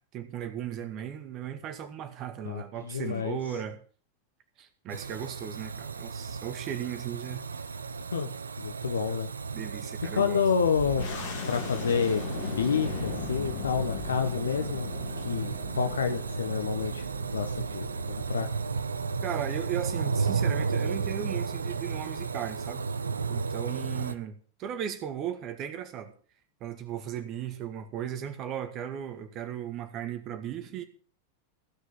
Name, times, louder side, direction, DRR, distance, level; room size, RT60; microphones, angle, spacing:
voice 1, 0.1-3.8 4.6-7.4 9.5-10.4 19.2-22.8 23.3-24.3 24.6-26.1 26.6-30.8, right 9 dB, 35° right, 2.0 m, -36 dB
voice 2, 2.4-3.4 8.1-8.3 8.6-9.3 10.1-11.0 11.5-14.9 15.2-17.1 17.3-18.5, left 6 dB, 70° left, 1.0 m, -29 dB
sound 1, 4.9-24.1, right 5 dB, 75° right, 0.7 m, -34 dB
sound 2, 10.8-20.0, left 5 dB, 55° left, 3.2 m, -39 dB
15.5 x 6.6 x 7.0 m
figure-of-eight pair, 90°, 0 cm